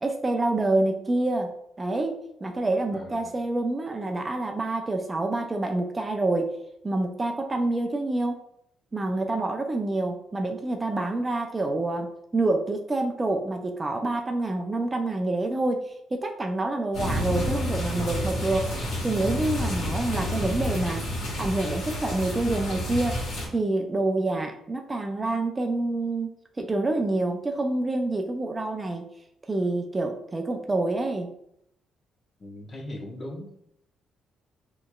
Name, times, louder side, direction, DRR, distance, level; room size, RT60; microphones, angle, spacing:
voice 1, 0.0-1.5 1.8-6.6 6.8-8.4 8.9-18.7 19.0-21.0 21.4-23.2 23.5-26.3 26.6-29.1 29.5-31.3, right 2 dB, 25° right, 4 dB, 0.4 m, -27 dB
voice 2, 2.9-3.4 32.4-33.7, left 1 dB, 35° left, -2 dB, 1.1 m, -39 dB
sound 1, 16.9-23.5, left 1 dB, 85° left, 1.4 m, -30 dB
4.4 x 3.0 x 2.3 m, 0.74 s
cardioid pair, 90°, 0 cm